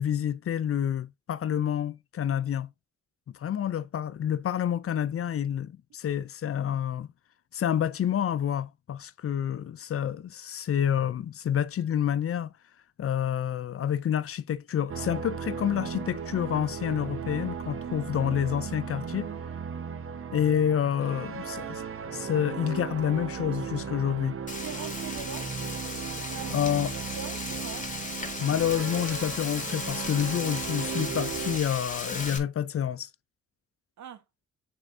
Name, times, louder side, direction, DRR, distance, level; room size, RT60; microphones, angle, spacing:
voice 1, 0.0-2.7 3.3-7.1 7.5-12.5 13.0-19.3 20.3-21.8 22.1-24.4 26.5-26.9 28.4-33.1, left 9 dB, 50° left, 0.5 m, -28 dB
sound 1, 14.9-31.6, right 6 dB, 45° right, 0.9 m, -36 dB
Frying (food), 24.5-32.4, left 3 dB, 25° left, 2.0 m, -36 dB
voice 2, 24.5-25.5 26.1-26.5 27.1-27.9 34.0-34.2, right 7 dB, 70° right, 1.1 m, -42 dB
6.4 x 4.4 x 3.6 m
cardioid pair, 75°, 30 cm